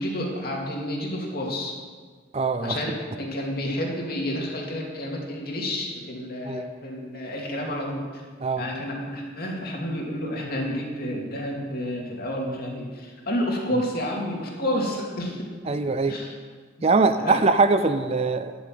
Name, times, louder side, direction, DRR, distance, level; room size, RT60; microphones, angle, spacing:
voice 1, 0.0-1.7 2.6-2.9 3.2-8.2 8.6-15.5 16.1-16.3 16.9-17.3, left 1 dB, 50° left, -1 dB, 2.6 m, -30 dB
voice 2, 2.3-2.8 6.5-6.7 8.4-8.6 15.7-16.2 16.8-18.6, right 3 dB, 30° right, 10 dB, 0.5 m, -22 dB
11.0 x 8.8 x 7.6 m, 1.5 s
head